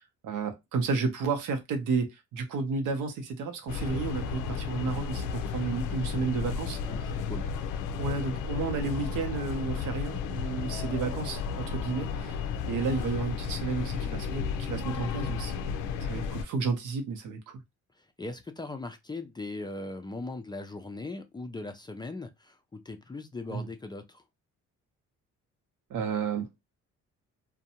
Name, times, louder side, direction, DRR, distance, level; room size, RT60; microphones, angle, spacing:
voice 1, 0.0-7.1 8.0-12.4 12.7-17.6 23.5-23.7 25.9-26.5, right 4 dB, 85° right, 0.7 m, -32 dB
sound 1, 3.7-16.4, left 6 dB, 85° left, 0.5 m, -33 dB
voice 2, 6.9-7.5 18.0-24.2, left 2 dB, 15° left, 0.3 m, -39 dB
2.5 x 2.2 x 2.7 m
cardioid pair, 90°, 30 cm